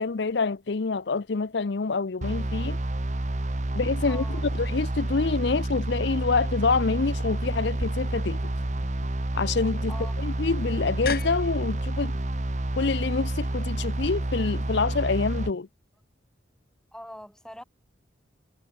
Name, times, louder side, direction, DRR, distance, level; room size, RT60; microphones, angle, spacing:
voice 1, 0.0-2.8 3.7-8.4 9.3-12.1 12.8-15.7, left 4 dB, 65° left, 0.6 m, -27 dB
sound 1, 2.2-15.5, right 1 dB, 40° right, 1.1 m, -29 dB
voice 2, 4.0-4.5 9.9-10.4 16.9-17.6, equal, 5° left, 4.5 m, -43 dB
sound 2, 7.8-14.1, left 4 dB, 50° left, 4.2 m, -41 dB
head